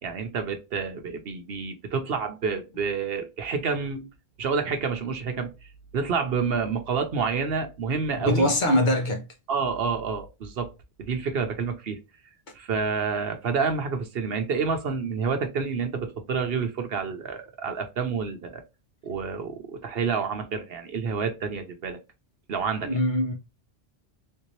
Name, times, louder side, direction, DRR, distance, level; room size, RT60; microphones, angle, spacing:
voice 1, 0.0-4.1 4.4-5.5 5.9-8.5 9.5-10.7 11.0-12.0 12.5-18.6 19.0-22.0 22.5-23.0, right 5 dB, 60° right, 0.9 m, -28 dB
voice 2, 8.3-9.2 22.8-23.3, left 1 dB, 50° left, 0.8 m, -22 dB
3.5 x 2.8 x 3.0 m
omnidirectional pair, 1.2 m